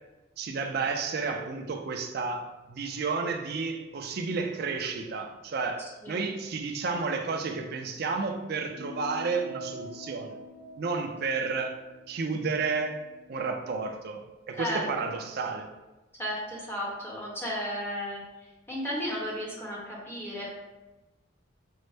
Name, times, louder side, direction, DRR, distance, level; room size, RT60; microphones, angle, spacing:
voice 1, 0.4-2.4 2.7-10.4 10.8-11.7 12.1-13.0 13.3-15.7, right 4 dB, 50° right, 4 dB, 0.4 m, -31 dB
sound 1, 8.7-13.5, equal, 70° right, 0.7 m, -45 dB
voice 2, 16.2-18.2 18.7-20.5, equal, 10° left, -5 dB, 0.9 m, -34 dB
5.3 x 2.0 x 3.3 m, 1.1 s
head